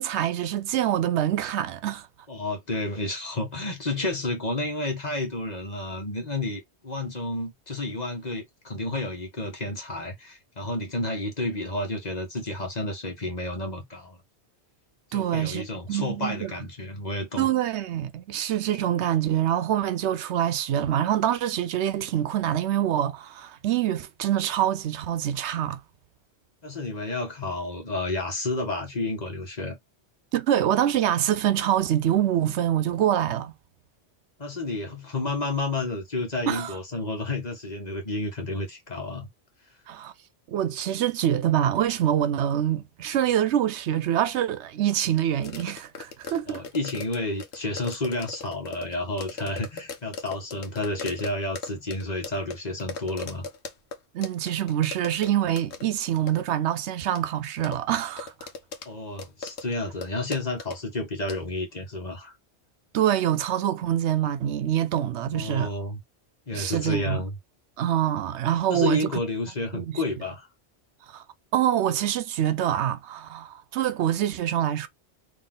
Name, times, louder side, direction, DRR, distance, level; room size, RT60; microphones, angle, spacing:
voice 1, 0.0-2.1 15.1-16.5 17.4-25.8 30.3-33.5 36.5-36.8 39.9-40.1 40.5-46.6 54.1-58.3 62.9-65.7 66.5-67.2 67.8-69.1 69.7-70.0 71.1-71.2 71.5-74.9, right 11 dB, 80° right, 0.9 m, -25 dB
voice 2, 2.3-14.2 15.1-17.5 26.6-29.8 34.4-39.3 46.5-53.5 58.8-62.3 65.3-66.0 66.5-67.3 68.7-70.5, left 2 dB, 40° left, 1.4 m, -31 dB
sound 1, 45.4-54.0 54.2-55.3 55.6-55.8 56.3-56.4 57.2-57.3 57.6-58.9 59.2-59.6 60.0-60.1 60.3-60.8 61.3-61.4, left 4 dB, 75° left, 1.1 m, -37 dB
4.1 x 2.9 x 3.7 m
omnidirectional pair, 1.2 m